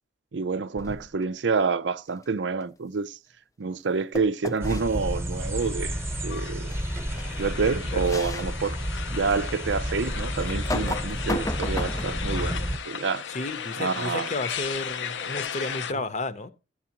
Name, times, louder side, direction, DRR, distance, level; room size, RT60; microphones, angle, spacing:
voice 1, 0.3-3.2 3.6-6.7 7.4-8.8 9.1-12.6 12.9-13.2 13.8-14.3 16.0-16.1, right 4 dB, 70° right, 0.5 m, -28 dB
sound 1, 0.8-1.3 4.1-4.8 6.7-6.8 7.2-7.3 8.0-8.5 9.1-9.2 10.5-12.2, left 1 dB, 20° left, 0.5 m, -33 dB
sound 2, 4.6-12.8, equal, 15° right, 1.0 m, -31 dB
sound 3, 5.4-15.9, left 7 dB, 75° left, 0.6 m, -36 dB
voice 2, 7.7-8.0 13.3-16.5, left 2 dB, 40° left, 0.8 m, -32 dB
14.5 x 8.4 x 2.9 m
head